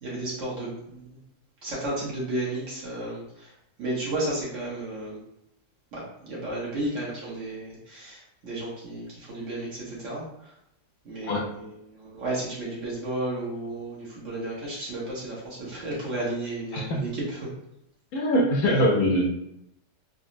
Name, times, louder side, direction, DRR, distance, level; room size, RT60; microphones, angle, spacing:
voice 1, 0.0-1.2 1.6-3.5 3.8-5.2 5.9-10.5 11.0-17.5, right 1 dB, 55° right, -6 dB, 1.1 m, -33 dB
voice 2, 16.7-17.0 18.1-19.3, equal, 70° left, -2 dB, 0.9 m, -23 dB
3.8 x 2.0 x 2.5 m, 0.79 s
omnidirectional pair, 1.8 m